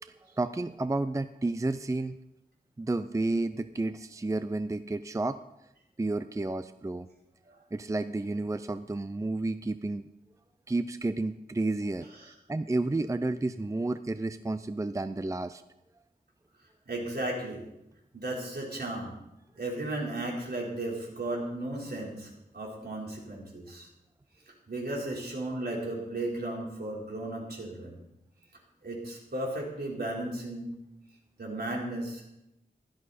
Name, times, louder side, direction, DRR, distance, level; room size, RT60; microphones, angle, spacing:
voice 1, 0.0-2.2 2.8-5.4 6.0-7.1 7.7-10.1 10.7-12.1 12.5-15.6, right 2 dB, 20° right, 11 dB, 0.5 m, -31 dB
voice 2, 16.9-17.7 18.1-19.2 19.6-23.9 24.7-28.0 28.8-30.8 31.4-32.2, right 1 dB, 70° right, -2 dB, 4.2 m, -35 dB
16.0 x 12.5 x 4.3 m, 0.89 s
wide cardioid pair, 95°, 17 cm